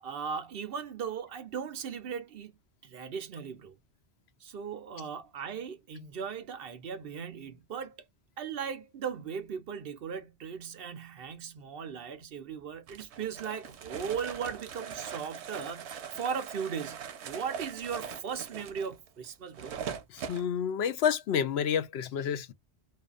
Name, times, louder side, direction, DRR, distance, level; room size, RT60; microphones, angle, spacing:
voice 1, 0.0-2.5 2.8-3.7 4.4-7.9 8.4-19.8, right 7 dB, 65° right, 0.8 m, -38 dB
sound 1, 12.9-20.5, right 7 dB, 90° right, 0.9 m, -41 dB
voice 2, 20.1-22.5, left 8 dB, 75° left, 0.8 m, -29 dB
2.7 x 2.3 x 2.3 m
omnidirectional pair, 1.1 m